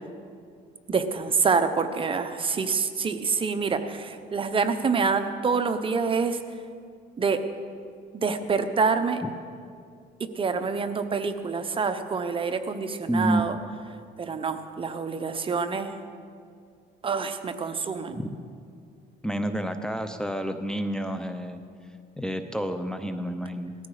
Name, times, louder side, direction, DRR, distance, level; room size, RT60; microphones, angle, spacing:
voice 1, 0.9-6.4 7.2-7.4 8.1-9.2 10.2-13.5 14.2-15.9 17.0-18.2, right 5 dB, 30° right, 9 dB, 0.9 m, -26 dB
voice 2, 13.1-13.5 18.1-18.3 19.2-21.6 22.2-23.7, right 1 dB, 5° left, 7 dB, 0.7 m, -29 dB
18.5 x 13.5 x 5.0 m, 2.3 s
cardioid pair, 110°, 17 cm